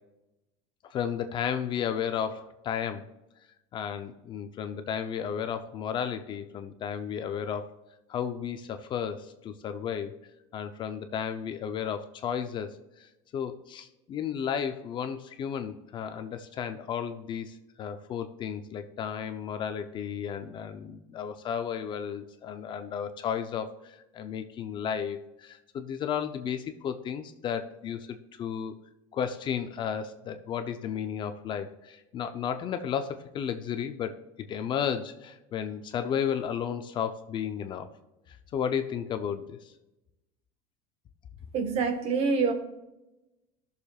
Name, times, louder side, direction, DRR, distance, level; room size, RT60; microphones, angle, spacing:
voice 1, 0.9-3.0 3.7-7.8 8.1-10.1 10.5-12.7 13.0-28.7 29.1-34.1 34.4-37.9 38.3-39.7, left 8 dB, 35° left, 8 dB, 0.6 m, -33 dB
voice 2, 41.5-42.5, right 5 dB, 40° right, 6 dB, 1.4 m, -26 dB
18.5 x 6.7 x 2.4 m, 0.97 s
cardioid pair, 150°, 15 cm